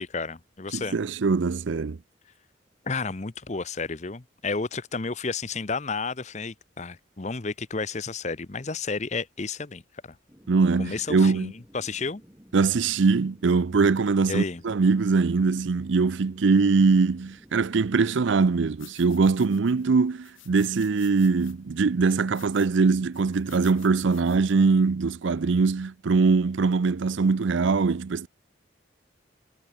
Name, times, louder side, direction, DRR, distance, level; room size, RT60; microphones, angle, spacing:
voice 1, 0.0-1.0 2.8-10.2 10.8-12.2 14.3-14.6, left 4 dB, 35° left, 0.8 m, -32 dB
voice 2, 0.7-2.0 10.5-11.5 12.5-28.3, right 4 dB, 70° right, 0.5 m, -22 dB
sound 1, 10.3-18.2, equal, 15° right, 2.1 m, -55 dB
sound 2, 18.8-19.9 20.2-21.5 22.0-22.7 23.1-24.5, left 15 dB, 90° left, 6.7 m, -52 dB
head